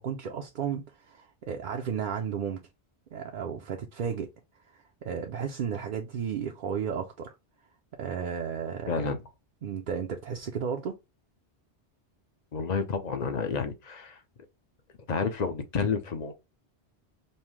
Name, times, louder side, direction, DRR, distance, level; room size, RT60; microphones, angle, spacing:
voice 1, 0.0-2.6 3.1-4.3 4.6-7.3 8.0-9.1 9.6-10.9, right 7 dB, 60° right, 0.6 m, -33 dB
voice 2, 8.9-9.2 12.5-14.2 15.1-16.3, left 5 dB, 45° left, 0.6 m, -30 dB
5.4 x 2.1 x 3.0 m
omnidirectional pair, 1.1 m